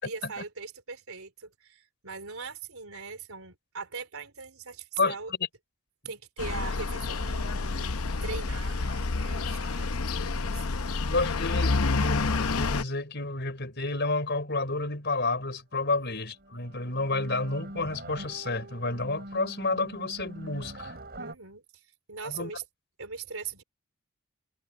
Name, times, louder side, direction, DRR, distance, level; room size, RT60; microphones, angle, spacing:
voice 1, 0.0-5.3 6.0-7.9 8.2-10.6 21.2-21.8 22.1-22.6 23.0-23.6, right 5 dB, 70° right, 3.8 m, -40 dB
sound 1, 6.4-12.8, left 3 dB, 75° left, 0.8 m, -29 dB
voice 2, 11.0-21.0 22.2-22.5, left 3 dB, 50° left, 5.0 m, -30 dB
sound 2, 16.0-16.1 16.4-21.4, right 1 dB, 45° right, 7.6 m, -43 dB
head